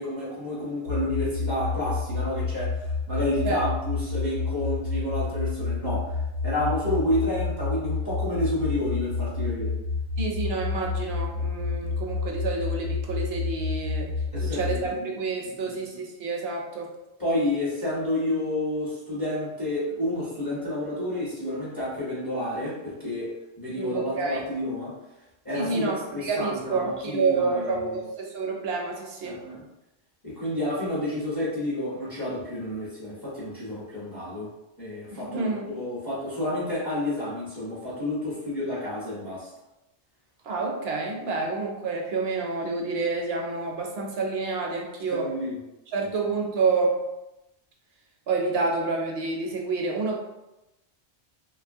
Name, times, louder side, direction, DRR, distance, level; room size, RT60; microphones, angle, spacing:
voice 1, 0.0-6.1 6.4-9.8 14.3-15.1 15.4-16.0 17.2-24.9 25.4-28.0 29.2-29.6 30.2-34.5 34.8-39.5 45.1-45.5, left 1 dB, 20° left, -8 dB, 0.7 m, -30 dB
sound 1, 0.9-14.9, left 4 dB, 85° left, 0.9 m, -29 dB
voice 2, 10.2-14.1 14.4-16.9 23.8-24.4 25.5-29.4 35.1-35.7 40.4-45.3 45.9-47.0 48.3-50.2, right 4 dB, 70° right, 0 dB, 0.8 m, -28 dB
2.7 x 2.3 x 2.6 m, 0.96 s
omnidirectional pair, 1.1 m